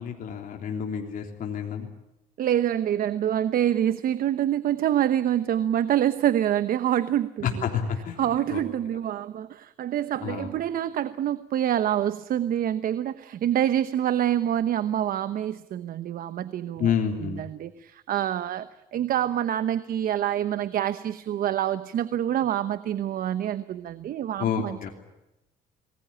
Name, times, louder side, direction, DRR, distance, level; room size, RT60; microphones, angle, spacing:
voice 1, 0.0-1.9 7.4-8.6 10.2-10.5 16.8-17.5 24.4-24.9, left 7 dB, 55° left, 2 dB, 3.5 m, -29 dB
voice 2, 2.4-7.6 8.2-16.9 17.2-24.9, right 11 dB, 60° right, 13 dB, 1.0 m, -26 dB
26.5 x 20.5 x 8.9 m, 0.93 s
cardioid pair, 110°, 17 cm